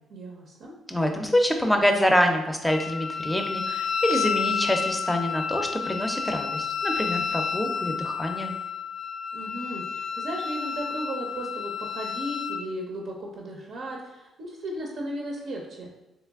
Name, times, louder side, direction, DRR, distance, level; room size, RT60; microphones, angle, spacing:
voice 1, 0.1-0.7 9.3-15.9, right 1 dB, 70° right, -1 dB, 0.6 m, -35 dB
voice 2, 0.9-8.6, left 1 dB, 5° left, 4 dB, 0.5 m, -25 dB
Wind instrument woodwind instrument, 2.7-12.6, left 6 dB, 55° left, 0.3 m, -30 dB
3.2 x 3.1 x 3.5 m, 0.99 s
cardioid pair, 90°, 0 cm